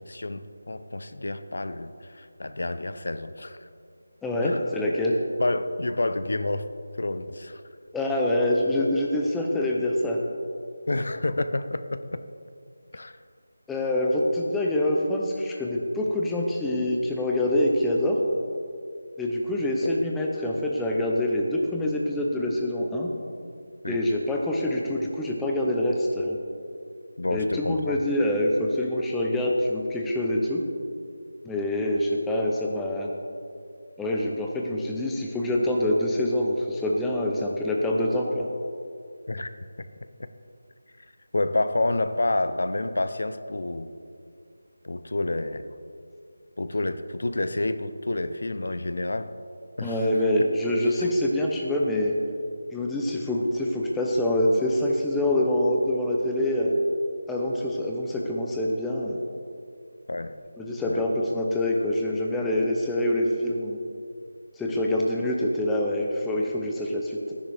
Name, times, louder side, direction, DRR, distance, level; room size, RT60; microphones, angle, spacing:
voice 1, 0.0-3.6 4.4-4.6 5.4-6.7 7.0-7.6 10.9-12.2 12.9-13.1 19.8-20.0 23.8-24.0 27.2-28.0 39.3-39.5 40.2-40.3 41.3-43.9 44.8-45.7 46.6-49.3 49.8-50.2 60.1-60.4 60.9-61.0, left 2 dB, 55° left, 11 dB, 0.6 m, -29 dB
voice 2, 4.2-5.1 7.9-10.2 13.7-18.2 19.2-23.1 23.9-26.4 27.3-30.6 31.4-33.1 34.0-38.5 49.8-52.1 52.7-56.7 57.3-59.2 60.6-63.8 64.6-67.4, left 1 dB, 5° left, -2 dB, 0.5 m, -25 dB
12.0 x 10.0 x 3.4 m, 2.4 s
figure-of-eight pair, 180°, 0 cm